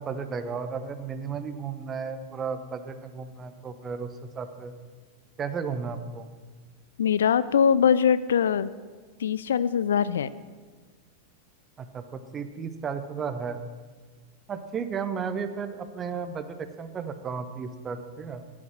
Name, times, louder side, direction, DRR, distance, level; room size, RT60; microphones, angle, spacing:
voice 1, 0.0-4.7 5.4-6.3 11.8-13.6 14.5-18.4, right 6 dB, 25° right, 10 dB, 1.0 m, -34 dB
voice 2, 7.0-8.7 9.2-10.3, left 7 dB, 65° left, 17 dB, 0.4 m, -22 dB
15.0 x 8.7 x 6.2 m, 1.4 s
figure-of-eight pair, 90°, 0 cm